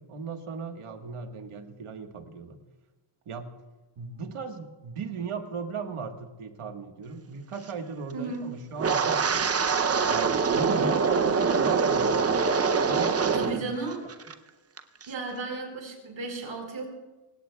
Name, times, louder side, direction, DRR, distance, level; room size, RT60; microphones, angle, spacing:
voice 1, 0.0-2.6 3.2-3.5 4.0-9.5 10.1-13.7, right 5 dB, 90° right, 5 dB, 1.5 m, -37 dB
voice 2, 8.1-8.5 13.3-14.0 15.1-16.9, right 3 dB, 65° right, 1 dB, 4.7 m, -34 dB
Wind, 8.8-13.6 13.9-14.3 14.8-15.1, right 5 dB, 30° right, 0.6 m, -24 dB
25.5 x 16.5 x 2.3 m, 1.2 s
wide cardioid pair, 135°, 49 cm